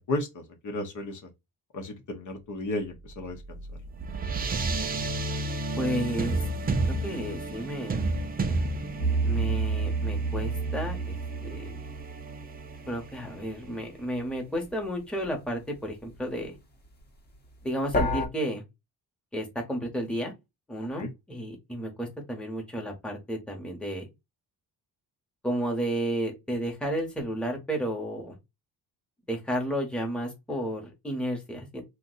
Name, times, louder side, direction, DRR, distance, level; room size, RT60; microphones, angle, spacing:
voice 1, 0.1-1.2 1.7-3.6 21.0-21.1, left 2 dB, 50° left, 0.7 m, -33 dB
sound 1, 3.1-13.9, right 2 dB, 25° right, 0.5 m, -32 dB
voice 2, 5.7-6.4 7.0-8.0 9.2-11.8 12.9-16.6 17.6-18.6 19.3-20.3 20.7-24.1 25.4-28.4 29.3-31.8, equal, 5° left, 0.9 m, -32 dB
sound 2, 9.0-13.2 17.9-18.3, right 2 dB, 25° left, 0.9 m, -29 dB
2.6 x 2.2 x 3.8 m
cardioid pair, 120°, 38 cm